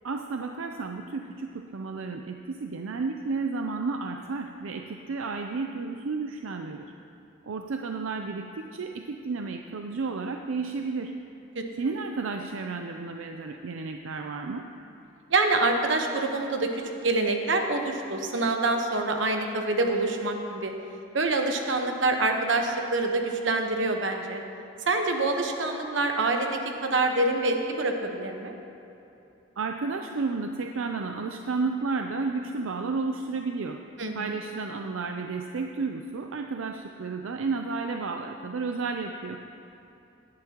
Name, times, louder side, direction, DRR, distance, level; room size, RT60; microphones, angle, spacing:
voice 1, 0.0-6.9 7.4-11.1 11.8-14.6 29.6-33.8 34.1-39.4, right 4 dB, 85° right, 4 dB, 0.5 m, -32 dB
voice 2, 15.3-20.7 21.1-24.4 24.8-28.5 34.0-34.3, right 2 dB, 65° right, 4 dB, 1.1 m, -26 dB
17.0 x 11.5 x 2.9 m, 2.9 s
head